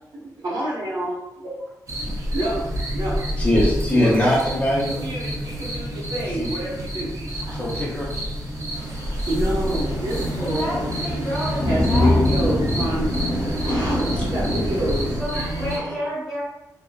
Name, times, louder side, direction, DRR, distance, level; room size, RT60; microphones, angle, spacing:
voice 1, 0.1-1.5 2.3-2.7 2.9-3.2 3.9-4.4 4.9-7.6 9.3-10.9 11.6-13.1 13.6-16.1, right 1 dB, 75° right, -6 dB, 0.9 m, -28 dB
sound 1, 1.9-15.8, equal, 50° right, 0.6 m, -28 dB
voice 2, 3.4-4.9 6.2-6.5 7.5-8.1, left 1 dB, 20° left, -4 dB, 0.5 m, -21 dB
Thunder / Rain, 8.7-15.2, left 1 dB, 65° left, 0.8 m, -25 dB
voice 3, 10.4-12.2 15.2-16.4, equal, ahead, -8 dB, 1.0 m, -30 dB
2.7 x 2.1 x 2.3 m, 0.95 s
wide cardioid pair, 140°, 7 cm